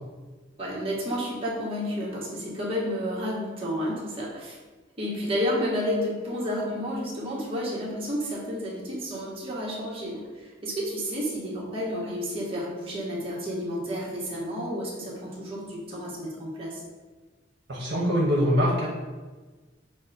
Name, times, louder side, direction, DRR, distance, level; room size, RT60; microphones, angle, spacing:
voice 1, 0.6-4.6 5.0-16.8, equal, 30° right, -5 dB, 1.1 m, -31 dB
voice 2, 17.7-18.9, equal, 65° right, -3 dB, 0.9 m, -23 dB
6.0 x 2.1 x 3.9 m, 1.3 s
head